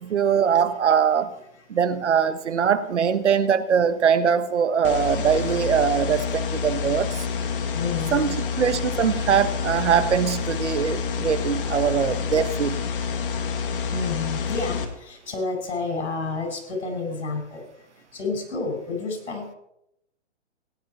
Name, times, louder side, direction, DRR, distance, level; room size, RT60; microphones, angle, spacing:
voice 1, 0.0-1.3 1.7-7.2 8.1-12.8, right 7 dB, 85° right, 12 dB, 1.5 m, -22 dB
sound 1, 4.8-14.9, left 6 dB, 50° left, 2.1 m, -28 dB
voice 2, 7.7-8.4 13.9-17.6 18.1-19.6, left 4 dB, 80° left, 4 dB, 5.6 m, -30 dB
17.5 x 10.5 x 4.3 m, 0.76 s
hypercardioid pair, 155°, 34 cm